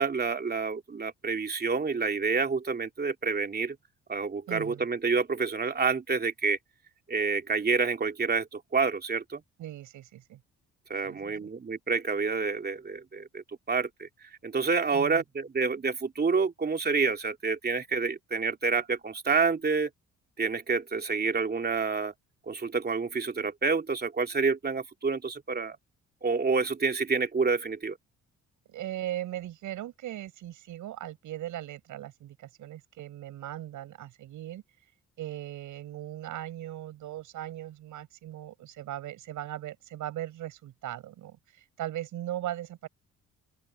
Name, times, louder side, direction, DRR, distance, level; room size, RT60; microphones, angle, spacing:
voice 1, 0.0-3.8 4.1-6.6 7.1-9.4 10.9-19.9 20.4-22.1 22.5-25.8 26.2-28.0, right 4 dB, 30° right, 2.7 m, -28 dB
voice 2, 4.5-4.8 9.6-10.4 11.0-11.5 14.9-15.2 28.7-34.6 35.2-41.4 41.8-42.9, right 13 dB, 80° right, 6.3 m, -38 dB
open air
cardioid pair, 90°, 30 cm